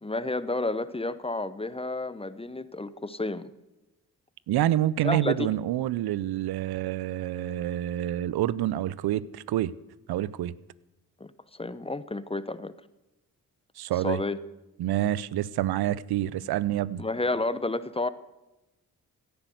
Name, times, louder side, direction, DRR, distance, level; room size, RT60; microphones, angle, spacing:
voice 1, 0.0-3.5 5.0-5.5 11.2-12.7 14.0-14.4 17.0-18.1, left 2 dB, 15° left, 1.1 m, -31 dB
voice 2, 4.5-9.7 10.1-10.6 13.8-14.2 14.8-17.0, right 13 dB, 85° right, 0.7 m, -27 dB
16.5 x 10.5 x 8.0 m
cardioid pair, 55°, 37 cm